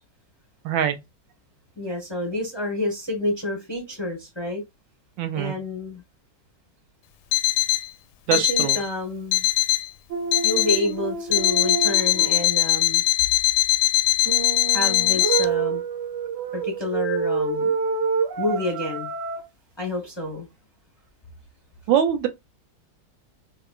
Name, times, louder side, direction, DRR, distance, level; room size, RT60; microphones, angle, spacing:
voice 1, 0.6-1.0 5.2-5.5 8.3-8.8 21.9-22.3, right 9 dB, 90° right, 1.4 m, -23 dB
voice 2, 1.8-4.6 5.3-6.0 8.3-9.5 10.4-13.0 14.7-15.8 16.5-17.7 18.4-19.1 19.8-20.5, left 2 dB, 20° left, 0.8 m, -29 dB
Alarm, 7.3-7.9 8.3-8.9 9.3-9.9 10.3-10.9 11.3-15.4, left 15 dB, 75° left, 1.2 m, -21 dB
sound 1, 10.1-12.4 14.3-19.4, right 6 dB, 60° right, 0.8 m, -27 dB
4.2 x 2.9 x 2.3 m
omnidirectional pair, 2.0 m